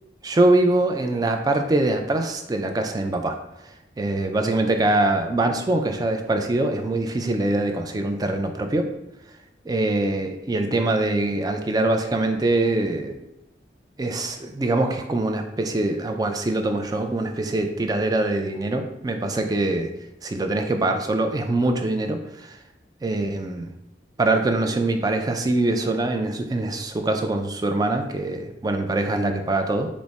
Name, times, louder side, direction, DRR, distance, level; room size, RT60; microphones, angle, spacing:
voice 1, 0.2-3.4 4.0-8.9 9.7-13.2 14.0-19.9 20.2-22.5 23.0-23.7 24.2-29.9, right 2 dB, 20° right, 5 dB, 0.3 m, -23 dB
4.6 x 2.1 x 4.0 m, 0.89 s
head